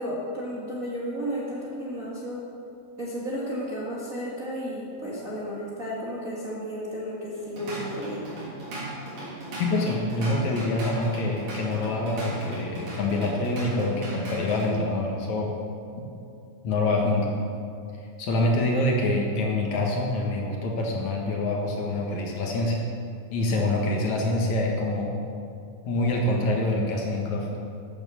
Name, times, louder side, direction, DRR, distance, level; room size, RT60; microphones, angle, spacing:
voice 1, 0.0-2.4 3.0-8.3, equal, 35° right, -6 dB, 1.5 m, -33 dB
Drum kit / Drum, 7.3-14.7, right 1 dB, 80° right, 5.1 m, -37 dB
voice 2, 9.6-15.5 16.0-16.1 16.6-17.3 18.2-22.8 23.3-25.1 25.9-27.5, left 2 dB, 65° left, 0 dB, 2.5 m, -26 dB
12.5 x 7.9 x 6.8 m, 2.5 s
omnidirectional pair, 3.8 m